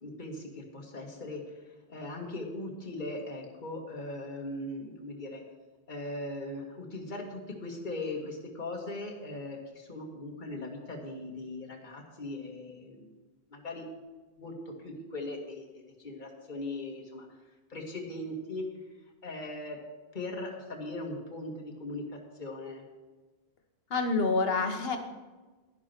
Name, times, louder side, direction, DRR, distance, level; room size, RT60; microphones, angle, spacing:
voice 1, 0.0-1.4 1.9-5.4 5.9-13.1 13.5-13.9 14.4-17.3 17.7-18.6 19.2-19.8 20.1-22.0 22.4-22.8, left 2 dB, 50° left, 0 dB, 1.9 m, -39 dB
voice 2, 23.9-25.0, left 3 dB, 65° left, 6 dB, 1.4 m, -27 dB
11.0 x 10.5 x 4.4 m, 1.2 s
omnidirectional pair, 1.1 m